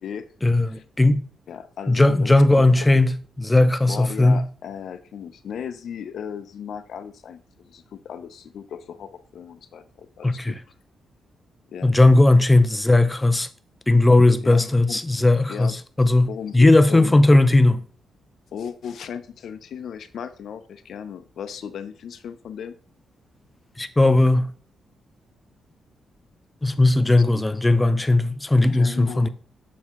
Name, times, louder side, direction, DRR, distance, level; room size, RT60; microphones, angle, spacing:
voice 1, 0.4-1.2 1.9-3.1 3.4-4.4 10.2-10.5 11.8-13.5 13.9-16.3 16.5-17.8 23.8-24.5 26.6-29.3, left 2 dB, 10° left, 0.5 m, -17 dB
voice 2, 1.5-2.4 3.8-10.6 11.7-11.9 14.4-15.0 15.5-15.8 16.3-17.2 18.5-22.7 27.2-27.3 28.7-29.3, left 7 dB, 60° left, 0.6 m, -36 dB
7.2 x 4.5 x 3.7 m
wide cardioid pair, 150°, 0 cm